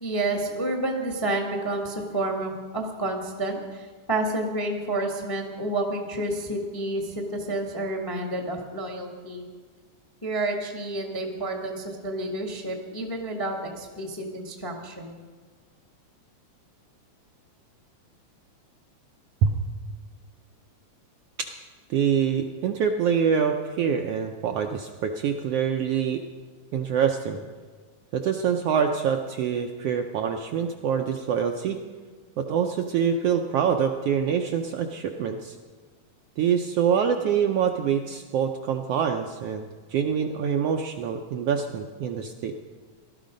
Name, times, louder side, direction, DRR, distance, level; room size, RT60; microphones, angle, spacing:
voice 1, 0.0-9.4 10.2-15.2, right 2 dB, 15° left, 2 dB, 0.8 m, -30 dB
voice 2, 21.9-26.2 26.7-27.4 28.1-31.8 32.4-35.6 36.4-42.5, right 7 dB, 75° right, 4 dB, 1.4 m, -25 dB
18.0 x 12.5 x 5.2 m, 1.5 s
omnidirectional pair, 3.4 m